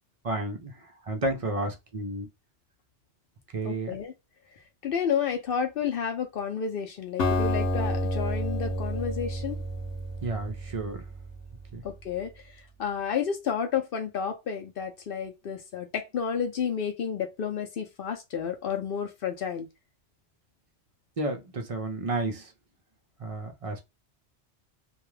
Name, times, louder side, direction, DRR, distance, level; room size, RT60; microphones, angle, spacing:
voice 1, 0.2-2.3 3.5-3.9 10.2-11.0 11.7-11.8 21.2-22.5 23.2-23.8, right 2 dB, 50° right, 0.4 m, -31 dB
voice 2, 3.6-4.1 4.8-9.6 11.8-12.3 12.8-19.7, left 7 dB, 60° left, 0.6 m, -31 dB
Acoustic guitar, 7.2-11.3, equal, 85° left, 1.0 m, -29 dB
2.4 x 2.2 x 3.0 m
omnidirectional pair, 1.2 m